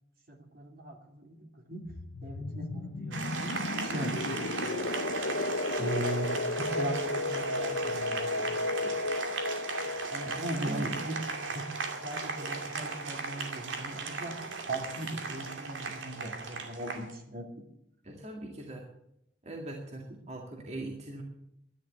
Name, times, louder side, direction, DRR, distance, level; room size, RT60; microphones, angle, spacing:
voice 1, 0.3-1.8 2.2-3.6 3.8-4.8 5.3-5.4 5.8-6.3 6.6-8.6 8.8-8.9 10.1-11.2 11.5-11.7 12.0-17.5, right 1 dB, 50° right, 3 dB, 2.6 m, -39 dB
sound 1, 1.9-12.4, left 2 dB, 65° left, 0.7 m, -34 dB
Applause, 3.1-17.1, right 4 dB, 85° right, 2.4 m, -37 dB
voice 2, 10.2-10.9 12.6-13.0 18.0-18.9 19.4-21.2, right 1 dB, 35° right, 1 dB, 2.1 m, -41 dB
12.5 x 10.0 x 8.1 m, 0.77 s
head